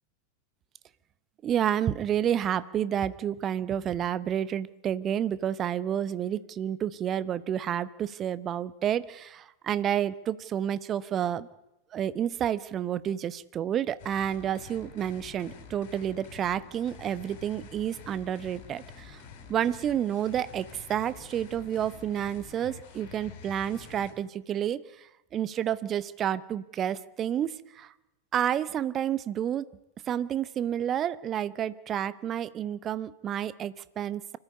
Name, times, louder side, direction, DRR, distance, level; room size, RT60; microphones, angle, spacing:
voice 1, 1.4-11.5 11.9-19.2 19.5-24.8 25.3-27.9 28.3-29.7 30.1-34.4, right 10 dB, 30° right, 17 dB, 0.8 m, -30 dB
sound 1, 14.0-24.1, left 6 dB, 50° left, 4.0 m, -48 dB
25.5 x 14.0 x 8.5 m, 0.95 s
figure-of-eight pair, 90°, 0 cm